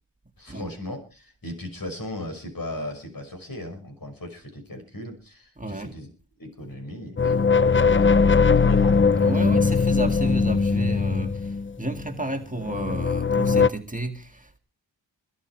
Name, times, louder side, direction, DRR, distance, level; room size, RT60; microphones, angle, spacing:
voice 1, 0.4-6.1 6.4-9.1, left 1 dB, 50° left, 5.8 m, -37 dB
voice 2, 5.6-5.9 9.2-14.6, right 2 dB, 20° right, 1.9 m, -32 dB
sound 1, 7.2-12.1 12.6-13.7, left 4 dB, 25° left, 0.7 m, -20 dB
22.0 x 10.5 x 4.7 m
cardioid pair, 55°, 44 cm